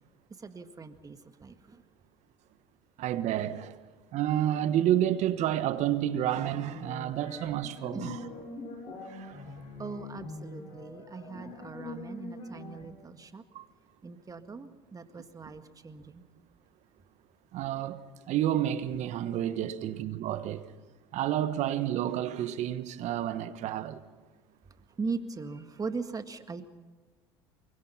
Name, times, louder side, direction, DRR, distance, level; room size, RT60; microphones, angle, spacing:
voice 1, 0.4-1.8 7.9-8.1 9.8-13.4 14.0-16.2 25.0-26.6, right 4 dB, 25° right, 1.8 m, -40 dB
voice 2, 3.0-3.8 4.1-8.2 9.0-9.4 13.5-13.6 17.5-20.7 21.1-24.0, right 11 dB, 60° right, 1.3 m, -30 dB
sound 1, 5.7-12.8, left 2 dB, 60° left, 5.3 m, -43 dB
24.0 x 22.5 x 5.7 m
hypercardioid pair, 75°, 13 cm